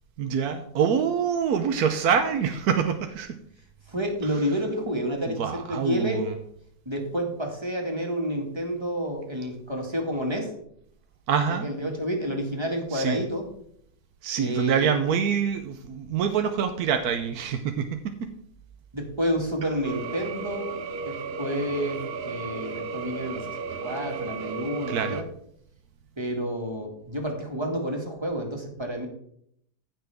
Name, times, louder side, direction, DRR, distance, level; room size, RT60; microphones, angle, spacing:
voice 1, 0.2-3.4 5.3-6.3 11.3-11.7 12.9-13.2 14.2-18.0 24.9-25.2, right 7 dB, 75° right, 7 dB, 1.2 m, -25 dB
voice 2, 3.9-6.2 6.9-10.5 11.5-13.5 14.4-14.9 18.9-20.8 21.1-25.3 26.2-29.1, equal, 15° right, 1 dB, 2.0 m, -29 dB
sound 1, 19.8-25.2, right 5 dB, 55° right, 0.7 m, -34 dB
15.5 x 5.9 x 3.5 m, 0.69 s
omnidirectional pair, 1.7 m